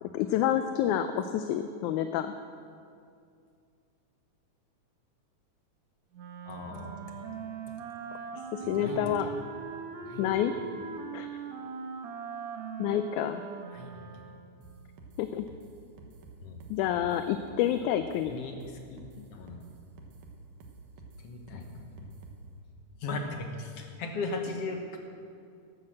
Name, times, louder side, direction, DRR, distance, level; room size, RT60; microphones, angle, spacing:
voice 1, 0.0-2.3 8.5-9.3 10.2-10.5 11.1-11.3 12.8-13.4 15.2-15.5 16.7-18.3, left 10 dB, 80° left, 9 dB, 1.9 m, -28 dB
Wind instrument woodwind instrument, 6.1-14.7, right 6 dB, 70° right, 2.1 m, -41 dB
voice 2, 6.5-7.0 8.6-9.1 10.1-10.4 13.7-13.9 16.4-16.6 18.3-18.6 18.9-19.0 19.3-19.6 21.2-22.0 23.0-25.0, left 3 dB, 60° left, 3 dB, 1.9 m, -37 dB
sound 1, 14.6-22.5, right 3 dB, 85° right, 3.0 m, -50 dB
12.5 x 10.5 x 7.5 m, 2.4 s
omnidirectional pair, 3.6 m